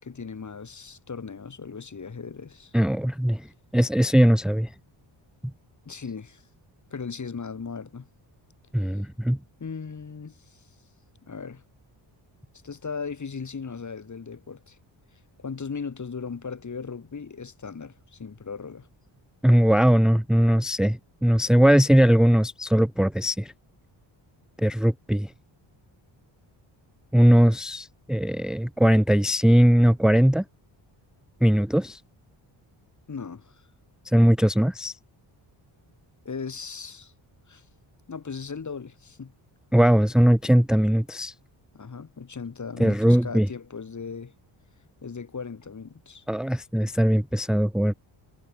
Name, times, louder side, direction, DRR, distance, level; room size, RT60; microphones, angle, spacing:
voice 1, 0.0-2.7 5.8-6.4 6.9-8.1 9.6-10.6 11.3-11.6 12.6-14.8 15.4-18.9 33.1-33.6 36.2-37.1 37.5-37.6 38.1-39.3 41.7-44.3 45.0-46.2, left 5 dB, 35° left, 6.5 m, -37 dB
voice 2, 2.7-3.5 3.7-4.7 8.7-9.4 19.4-23.5 24.6-25.3 27.1-30.4 31.4-32.0 34.1-34.9 39.7-41.3 42.8-43.5 46.3-47.9, equal, ahead, 0.8 m, -20 dB
wide cardioid pair, 135°, 47 cm